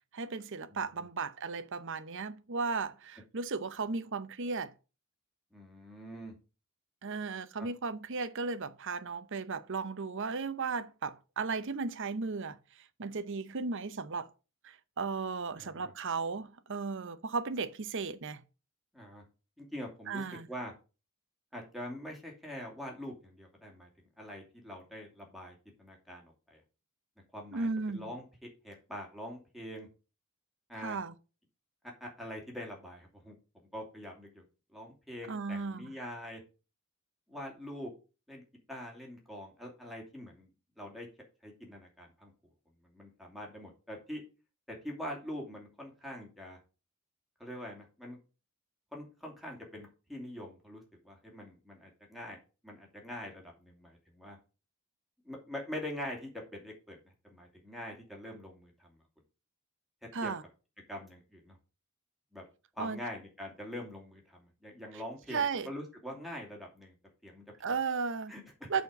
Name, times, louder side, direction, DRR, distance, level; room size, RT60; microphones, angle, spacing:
voice 1, 0.1-4.7 7.0-12.6 13.0-14.3 14.6-18.4 20.1-20.5 27.5-28.1 30.8-31.1 35.3-35.9 60.1-60.4 62.8-63.0 65.3-65.7 67.6-68.3 68.7-68.8, right 4 dB, 60° right, 0.7 m, -35 dB
voice 2, 0.7-1.1 5.5-6.3 7.6-7.7 15.6-15.9 18.9-19.2 19.6-20.7 21.5-23.9 24.2-26.6 27.3-29.9 30.7-31.0 32.0-33.3 33.7-34.4 34.7-36.4 37.3-37.9 38.3-38.4 38.7-40.5 40.8-41.1 41.4-42.3 42.8-44.2 44.7-46.6 47.4-48.2 48.9-52.4 52.6-54.4 55.2-57.0 57.2-59.0 60.2-60.3 60.9-61.6 62.3-62.4 62.7-67.0 67.2-67.4 68.3-68.7, left 1 dB, ahead, 2.5 m, -44 dB
8.3 x 4.4 x 6.6 m
head